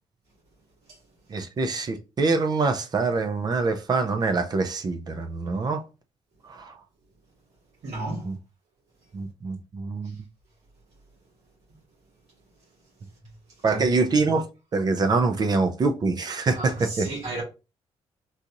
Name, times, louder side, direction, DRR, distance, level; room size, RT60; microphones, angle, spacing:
voice 1, 1.3-5.8 6.4-6.7 8.2-8.4 9.1-10.2 13.6-14.5 14.7-17.1, right 3 dB, 35° right, 0.5 m, -25 dB
voice 2, 7.8-8.3 13.7-13.8 16.5-17.4, right 2 dB, 75° right, 2.0 m, -32 dB
3.9 x 2.8 x 2.5 m
cardioid pair, 135°, 12 cm